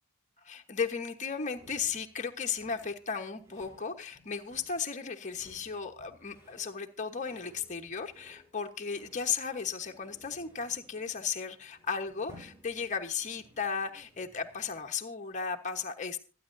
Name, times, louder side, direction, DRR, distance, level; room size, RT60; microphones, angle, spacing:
voice 1, 0.4-16.2, left 6 dB, 35° left, 4 dB, 1.2 m, -35 dB
sound 1, 1.5-15.0, equal, 10° right, 6.5 m, -59 dB
26.0 x 9.5 x 2.7 m, 0.33 s
head